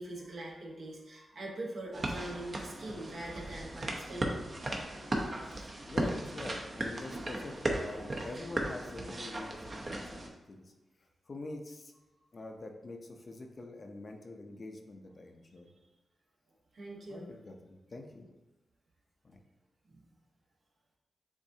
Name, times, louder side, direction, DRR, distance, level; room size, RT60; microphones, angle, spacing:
voice 1, 0.0-4.4 16.7-17.3 19.9-20.0, right 1 dB, 70° right, -4 dB, 1.3 m, -43 dB
sound 1, 1.9-10.3, right 1 dB, 45° right, 0.8 m, -37 dB
voice 2, 5.5-10.6 11.3-11.9 12.3-15.7 17.1-18.3 19.2-19.4, left 2 dB, 50° left, 3 dB, 0.6 m, -45 dB
7.0 x 2.6 x 2.8 m, 1.0 s
cardioid pair, 50°, 0 cm